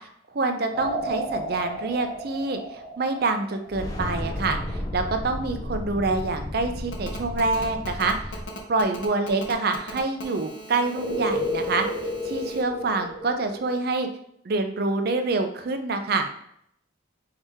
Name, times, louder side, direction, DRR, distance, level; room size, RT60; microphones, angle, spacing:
voice 1, 0.3-8.1 8.7-11.8 12.2-14.1 14.4-16.3, right 3 dB, 50° right, 6 dB, 0.5 m, -26 dB
sound 1, 0.7-4.1 11.0-13.8, equal, 5° right, 0.8 m, -32 dB
sound 2, 3.7-8.4, left 1 dB, 20° left, 0.5 m, -33 dB
Telephone, 6.9-12.6, left 1 dB, 65° left, 0.7 m, -40 dB
4.8 x 2.7 x 3.5 m, 0.70 s
head